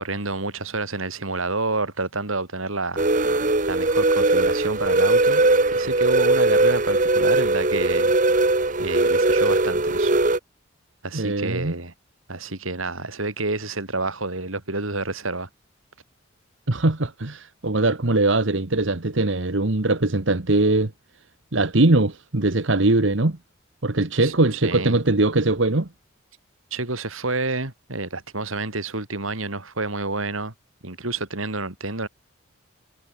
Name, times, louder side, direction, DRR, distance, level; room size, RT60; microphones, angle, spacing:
voice 1, 0.0-3.1 3.7-5.4 5.7-8.2 8.8-10.1 11.0-11.9 12.3-15.5 24.2-24.3 24.6-25.0 26.7-30.5 30.8-32.1, right 3 dB, 90° right, 4.5 m, -29 dB
sound 1, 3.0-10.4, right 2 dB, 40° right, 1.2 m, -20 dB
voice 2, 11.1-11.7 16.7-20.9 21.5-23.4 23.8-25.9, right 2 dB, 70° right, 1.4 m, -21 dB
head